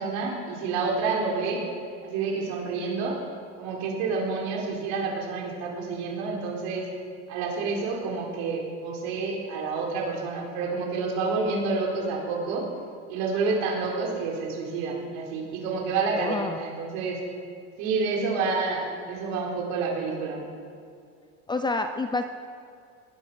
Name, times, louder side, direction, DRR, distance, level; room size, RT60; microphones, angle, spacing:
voice 1, 0.0-1.6 2.0-3.2 3.6-6.9 7.3-12.6 13.1-17.2 17.8-20.4, right 4 dB, 65° right, -1 dB, 4.4 m, -29 dB
voice 2, 16.1-16.6 21.5-22.2, left 3 dB, 15° left, 7 dB, 0.5 m, -28 dB
19.5 x 10.0 x 6.2 m, 2.3 s
cardioid pair, 150°, 35 cm